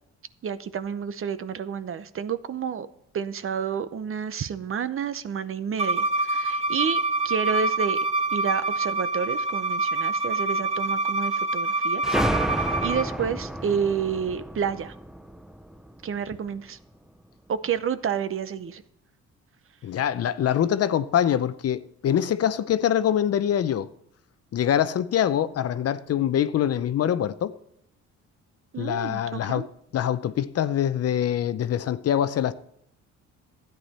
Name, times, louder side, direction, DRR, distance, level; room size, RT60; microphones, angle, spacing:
voice 1, 0.4-2.9 3.1-8.0 8.3-12.2 12.5-14.9 16.0-16.8 17.5-18.8 28.7-29.7, right 7 dB, 45° right, 0.7 m, -30 dB
Bowed string instrument, 5.8-13.1, right 2 dB, 20° right, 1.3 m, -26 dB
sound 1, 12.0-16.5, equal, ahead, 0.5 m, -30 dB
voice 2, 19.8-23.9 24.5-27.5 28.8-29.7 29.9-32.5, left 10 dB, 55° left, 0.7 m, -24 dB
13.0 x 9.2 x 4.2 m
cardioid pair, 90°, 30 cm